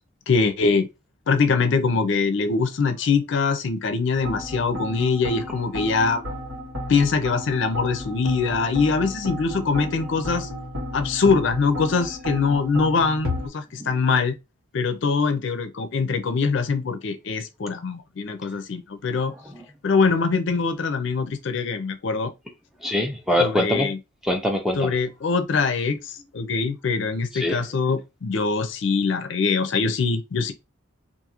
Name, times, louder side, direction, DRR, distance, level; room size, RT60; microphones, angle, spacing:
voice 1, 0.3-0.9 1.3-6.2 6.9-10.5 10.9-14.4 14.7-19.3 19.8-22.3 23.4-24.0 24.8-30.5, left 4 dB, 60° left, 0.4 m, -23 dB
sound 1, 4.1-13.5, left 1 dB, 85° right, 1.4 m, -33 dB
voice 2, 22.8-23.9 24.2-25.0 27.3-27.6, left 1 dB, ahead, 0.4 m, -23 dB
2.5 x 2.4 x 2.8 m
head